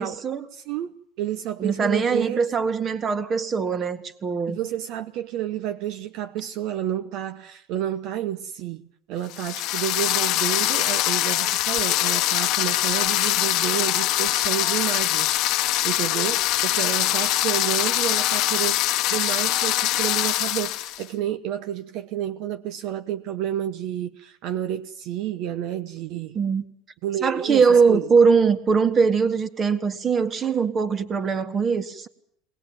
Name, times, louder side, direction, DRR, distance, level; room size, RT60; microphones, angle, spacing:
voice 1, 0.0-0.5 1.6-4.6 26.4-26.6 27.2-32.1, right 5 dB, 35° right, 1.9 m, -21 dB
voice 2, 0.5-2.4 4.5-8.8 9.1-18.8 19.1-26.4 27.0-28.0, right 11 dB, 65° right, 1.0 m, -30 dB
sound 1, 9.3-21.0, left 16 dB, 65° left, 0.9 m, -23 dB
22.0 x 19.5 x 8.9 m
supercardioid pair, 110°, 0 cm